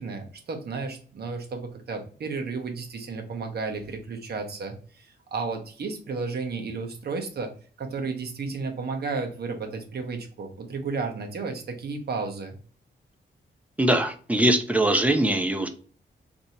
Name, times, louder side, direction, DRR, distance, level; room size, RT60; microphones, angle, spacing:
voice 1, 0.0-7.5 7.8-12.5, right 4 dB, 55° right, 4 dB, 0.8 m, -33 dB
voice 2, 13.8-15.7, right 1 dB, 5° right, 6 dB, 0.4 m, -22 dB
2.7 x 2.6 x 4.2 m, 0.42 s
wide cardioid pair, 170°, 20 cm